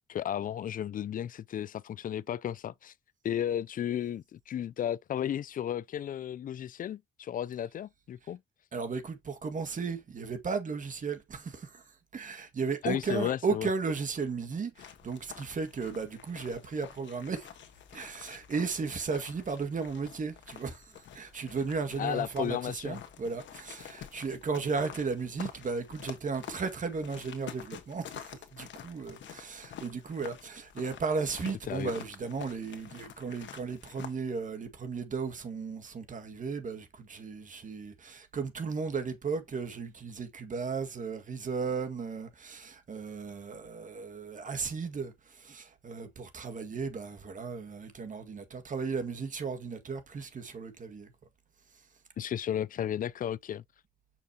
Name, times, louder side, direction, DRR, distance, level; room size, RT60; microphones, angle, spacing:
voice 1, 0.1-2.9 3.2-8.4 12.8-13.7 22.0-23.0 31.7-31.9 52.2-53.6, left 10 dB, 45° left, 0.4 m, -34 dB
voice 2, 8.7-11.8 12.1-17.5 17.9-51.1, right 5 dB, 40° right, 1.8 m, -35 dB
sound 1, 14.8-34.1, left 9 dB, 70° left, 1.4 m, -48 dB
6.4 x 5.8 x 2.8 m
cardioid pair, 90°, 20 cm